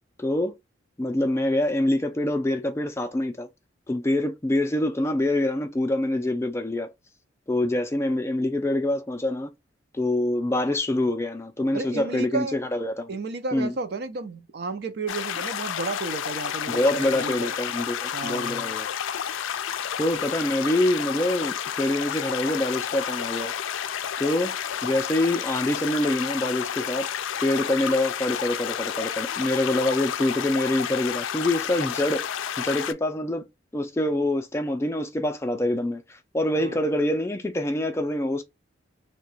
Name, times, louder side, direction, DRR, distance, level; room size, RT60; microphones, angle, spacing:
voice 1, 0.2-0.6 1.0-3.5 3.9-6.9 7.5-9.5 9.9-13.1 13.5-13.7 16.7-18.9 20.0-23.5 24.2-24.6 24.8-27.1 27.4-32.3 32.6-33.4 33.7-38.4, left 1 dB, 15° left, 0.3 m, -25 dB
voice 2, 11.7-12.6 13.1-17.6 18.1-18.7 36.5-36.8, right 4 dB, 55° right, 0.5 m, -32 dB
sound 1, 15.1-32.9, left 9 dB, 85° left, 0.4 m, -31 dB
2.8 x 2.2 x 4.0 m
head